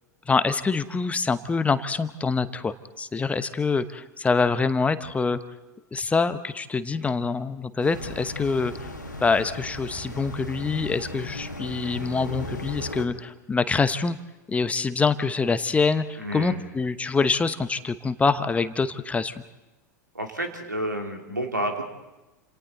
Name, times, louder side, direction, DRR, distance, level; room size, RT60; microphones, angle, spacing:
voice 1, 0.3-5.4 5.9-8.7 9.2-14.2 14.5-19.3, left 4 dB, 15° left, 12 dB, 1.0 m, -25 dB
sound 1, 7.8-13.1, left 1 dB, 90° left, 2.3 m, -36 dB
voice 2, 16.2-16.6 20.1-21.8, right 1 dB, 85° right, 3 dB, 2.8 m, -30 dB
29.0 x 27.5 x 4.0 m, 1.1 s
figure-of-eight pair, 85°, 10 cm